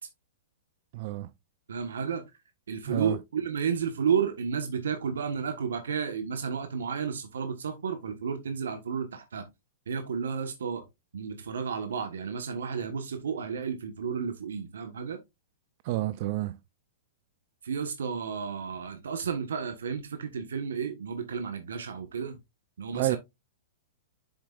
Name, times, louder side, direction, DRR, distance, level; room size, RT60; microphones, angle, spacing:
voice 1, 0.9-1.3 2.9-3.2 15.8-16.6 22.9-23.2, right 16 dB, 50° right, 0.5 m, -29 dB
voice 2, 1.7-2.2 2.7-9.5 9.9-10.8 11.1-15.2 17.6-22.4 22.8-23.2, right 6 dB, 90° right, 1.3 m, -32 dB
7.9 x 6.9 x 2.4 m
hypercardioid pair, 140°, 0 cm